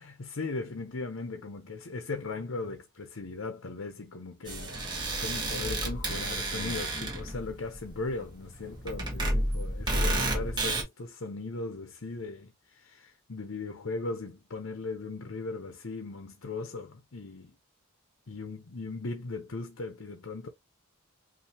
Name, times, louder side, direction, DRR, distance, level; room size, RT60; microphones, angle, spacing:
voice 1, 0.0-4.8 5.2-17.5 18.3-20.5, left 3 dB, 80° left, 0.8 m, -38 dB
sound 1, 4.5-10.8, right 1 dB, 20° right, 1.6 m, -31 dB
5.7 x 2.7 x 2.9 m
head